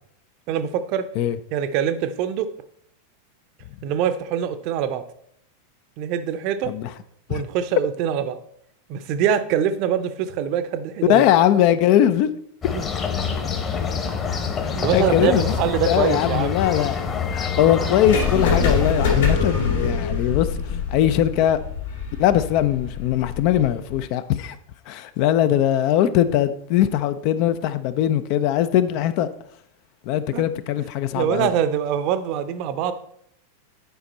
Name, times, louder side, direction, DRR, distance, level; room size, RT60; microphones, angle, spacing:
voice 1, 0.5-1.1 1.5-2.5 3.8-5.0 6.0-6.7 7.3-8.4 8.9-11.2 12.7-12.8 14.7-16.6 30.3-30.4 31.1-32.9, right 9 dB, 45° right, 0.7 m, -24 dB
voice 2, 11.1-12.3 14.9-15.5 15.9-16.9 17.3-20.5 20.9-21.6 22.2-24.6 24.9-29.3 30.1-31.5, left 11 dB, 45° left, 0.5 m, -20 dB
sound 1, 12.6-19.3, left 6 dB, 25° left, 1.1 m, -26 dB
sound 2, 18.1-24.0, left 5 dB, 60° left, 2.4 m, -24 dB
10.5 x 5.1 x 4.2 m
figure-of-eight pair, 90°, 0 cm